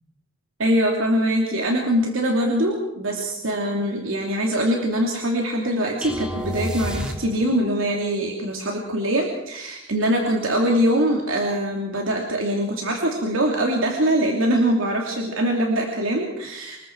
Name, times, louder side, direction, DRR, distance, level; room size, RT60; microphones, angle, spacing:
voice 1, 0.6-16.8, right 1 dB, 90° right, 0 dB, 2.8 m, -23 dB
sound 1, 6.0-7.7, equal, 5° right, 1.9 m, -30 dB
26.0 x 21.5 x 4.7 m, 0.88 s
head